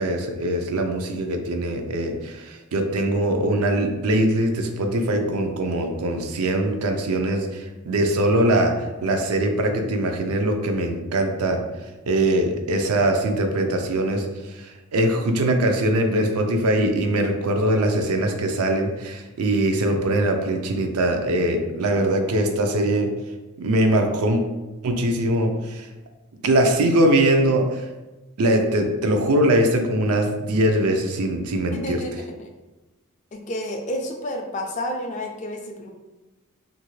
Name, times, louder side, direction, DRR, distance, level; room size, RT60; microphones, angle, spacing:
voice 1, 0.0-8.8 9.0-11.6 12.1-23.1 23.6-24.4 24.8-25.9 26.4-27.9 28.4-32.0, right 1 dB, 90° right, 4 dB, 0.5 m, -22 dB
voice 2, 31.7-32.5 33.3-35.9, left 1 dB, 35° left, 3 dB, 0.3 m, -30 dB
2.8 x 2.5 x 3.0 m, 1.1 s
head